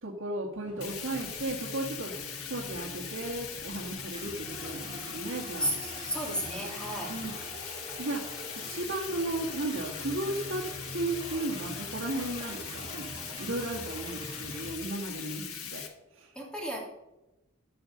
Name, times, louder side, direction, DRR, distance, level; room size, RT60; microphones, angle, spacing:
voice 1, 0.0-5.7 6.0-6.1 7.1-7.3 8.0-8.4 8.7-13.1 13.4-15.8 16.1-16.3, right 2 dB, 65° right, -6 dB, 2.2 m, -35 dB
sound 1, 0.6-14.8, right 1 dB, 20° right, 1.7 m, -45 dB
Bathtub (filling or washing), 0.8-15.9, left 8 dB, 85° left, 1.6 m, -41 dB
voice 2, 5.6-7.1 16.3-16.8, right 1 dB, 5° left, -2 dB, 3.0 m, -33 dB
14.5 x 5.2 x 6.8 m, 0.98 s
head